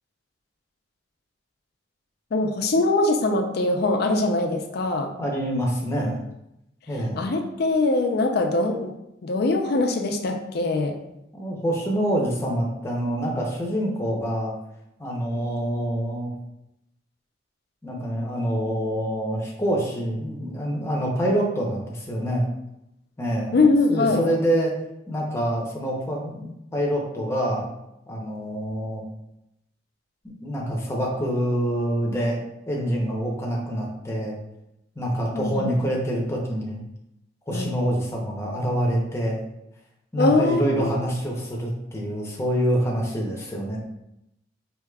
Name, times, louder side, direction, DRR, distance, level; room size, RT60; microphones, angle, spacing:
voice 1, 2.3-5.1 7.2-8.9 9.2-11.0 23.5-24.2 35.3-35.7 37.5-37.8 40.2-40.9, left 2 dB, 60° left, 4 dB, 0.4 m, -22 dB
voice 2, 5.2-6.2 6.9-7.2 11.3-14.5 15.0-16.3 17.8-22.5 23.2-23.6 23.9-24.7 25.1-27.7 28.1-29.0 30.4-32.4 32.7-34.4 35.0-36.8 37.5-39.4 40.1-43.8, equal, 15° left, -2 dB, 0.7 m, -26 dB
4.6 x 2.8 x 2.2 m, 0.85 s
head